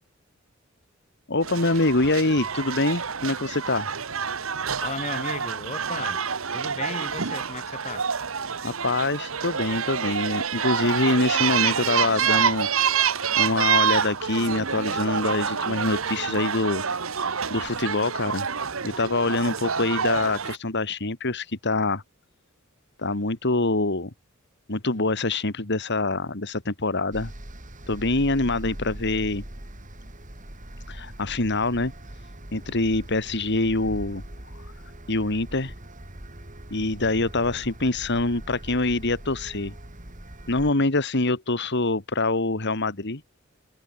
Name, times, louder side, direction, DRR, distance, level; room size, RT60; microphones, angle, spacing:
voice 1, 1.3-3.9 8.6-16.8 17.5-18.5 18.8-22.0 23.0-24.1 24.7-27.3 27.9-29.4 30.9-31.9 32.5-34.2 34.5-34.6 35.1-35.7 36.7-39.7 40.5-43.2, left 2 dB, 55° left, 2.3 m, -25 dB
sound 1, 1.4-20.6, right 7 dB, 70° right, 1.3 m, -27 dB
voice 2, 4.8-6.3 6.5-8.1, left 3 dB, 35° left, 4.4 m, -35 dB
sound 2, 27.1-40.7, right 1 dB, 40° right, 3.4 m, -41 dB
head